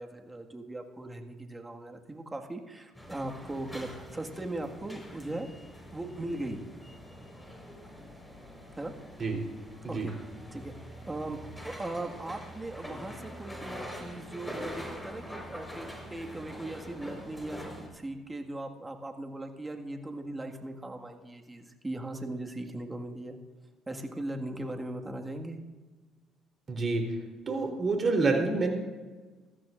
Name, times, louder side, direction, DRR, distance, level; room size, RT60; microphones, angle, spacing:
voice 1, 0.0-5.5 5.9-6.6 8.7-8.9 9.9-10.1 10.5-23.4 23.9-25.6, right 2 dB, 20° right, 3 dB, 1.8 m, -39 dB
sound 1, 2.9-17.9, equal, 10° left, 4.6 m, -44 dB
voice 2, 26.7-27.2 27.5-28.7, right 3 dB, 40° right, 2 dB, 3.6 m, -27 dB
20.0 x 14.0 x 2.6 m, 1.3 s
hypercardioid pair, 60°, 0 cm